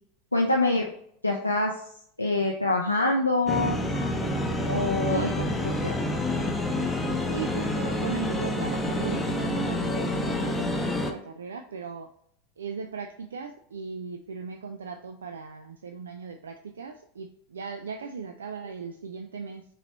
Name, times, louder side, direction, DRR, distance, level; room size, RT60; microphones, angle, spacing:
voice 1, 0.3-0.9 1.2-1.7 2.2-3.8 4.7-5.3 5.6-6.0, left 2 dB, 90° left, 0 dB, 0.4 m, -25 dB
sound 1, 3.5-11.1, left 1 dB, 5° left, 0.8 m, -28 dB
voice 2, 5.0-5.6 7.3-12.1 12.6-19.6, right 6 dB, 75° right, 6 dB, 0.3 m, -38 dB
5.6 x 3.1 x 2.9 m, 0.67 s
figure-of-eight pair, 80°, 0 cm